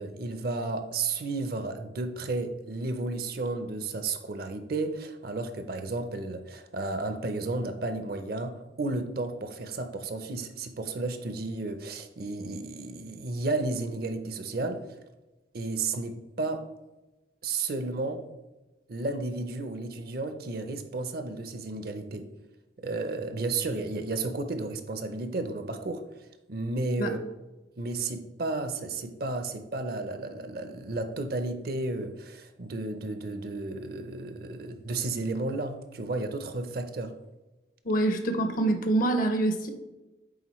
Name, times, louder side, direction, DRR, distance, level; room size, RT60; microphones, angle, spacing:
voice 1, 0.0-15.0 15.5-16.7 17.4-18.3 18.9-22.3 22.8-27.2 27.8-37.2, right 3 dB, 55° right, 0.6 m, -33 dB
voice 2, 37.8-39.7, right 2 dB, 50° left, 0.6 m, -25 dB
8.7 x 3.7 x 3.1 m
head